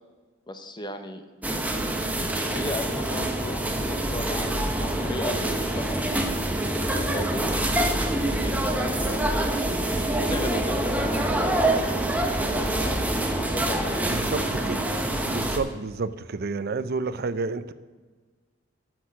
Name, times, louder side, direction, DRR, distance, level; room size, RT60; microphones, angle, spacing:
voice 1, 0.5-1.2 2.5-6.0 6.7-9.5 10.2-11.8 12.4-13.0 13.3-14.4, left 1 dB, 25° left, 7 dB, 0.8 m, -36 dB
sound 1, 1.4-15.6, right 1 dB, 10° right, 0.9 m, -26 dB
voice 2, 14.1-15.0 15.2-17.7, right 4 dB, 55° right, 13 dB, 0.5 m, -30 dB
12.0 x 6.3 x 6.2 m, 1.3 s
head